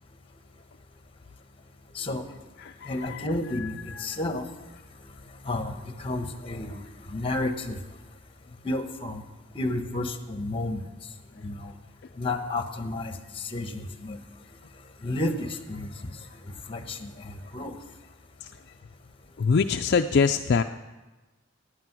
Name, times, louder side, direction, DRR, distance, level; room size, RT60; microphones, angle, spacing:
voice 1, 2.9-3.7 4.0-4.4 5.5-5.7 6.0-6.8 7.1-7.8 8.6-9.2 9.5-10.8 11.4-11.7 12.2-13.1 13.4-14.2 15.0-15.9 16.7-17.8, left 2 dB, 30° left, 7 dB, 1.2 m, -31 dB
voice 2, 19.4-20.6, left 5 dB, 55° left, 6 dB, 0.4 m, -22 dB
18.0 x 8.9 x 6.1 m, 1.2 s
head